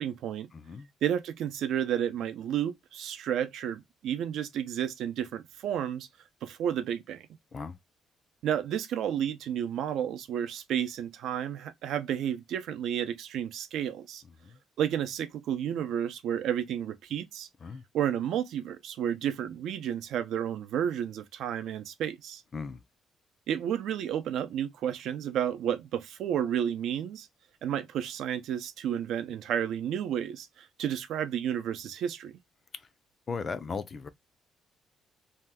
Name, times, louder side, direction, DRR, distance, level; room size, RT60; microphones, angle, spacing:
voice 1, 0.0-0.5 1.0-6.1 6.4-7.3 8.4-14.2 14.8-17.5 17.9-22.4 23.5-27.3 27.6-32.4, right 9 dB, 75° right, 0.5 m, -31 dB
voice 2, 0.5-0.9 7.5-7.8 14.4-14.6 17.6-17.8 22.5-22.8 33.3-34.1, left 5 dB, 35° left, 0.4 m, -37 dB
2.7 x 2.3 x 3.3 m
cardioid pair, 135°, 0 cm